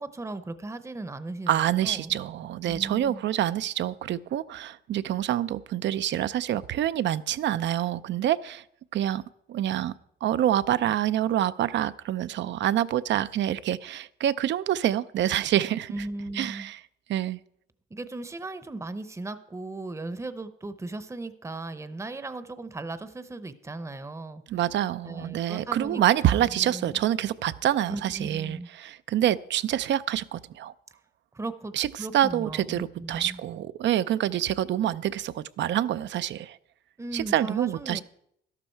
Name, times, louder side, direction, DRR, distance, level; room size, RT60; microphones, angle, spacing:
voice 1, 0.0-2.2 2.7-3.3 15.9-16.7 17.9-24.4 25.0-27.1 27.9-28.7 31.3-33.4 37.0-38.0, right 2 dB, 15° right, 12 dB, 0.8 m, -37 dB
voice 2, 1.5-8.6 8.9-9.2 9.5-9.9 10.2-16.0 16.3-16.8 17.1-17.4 24.5-30.7 31.7-31.9 32.1-36.6 37.1-38.0, right 11 dB, 65° right, 15 dB, 0.5 m, -26 dB
12.5 x 12.0 x 4.5 m, 0.72 s
cardioid pair, 90°, 20 cm